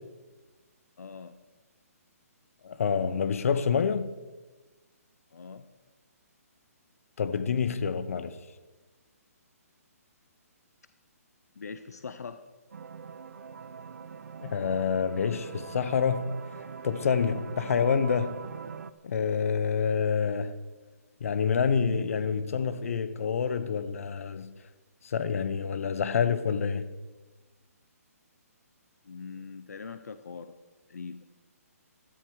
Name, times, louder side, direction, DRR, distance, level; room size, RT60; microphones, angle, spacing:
voice 1, 1.0-1.3 5.3-5.6 11.6-12.4 29.0-30.5 30.9-31.2, left 5 dB, 80° left, 0.8 m, -42 dB
voice 2, 2.6-4.1 7.2-8.4 14.4-16.3 16.8-18.5 19.0-20.6 21.2-24.5 25.0-26.9, left 6 dB, 60° left, 1.0 m, -27 dB
sound 1, 12.7-18.9, right 6 dB, 75° right, 0.8 m, -42 dB
16.0 x 13.0 x 4.8 m
hypercardioid pair, 155°, 9 cm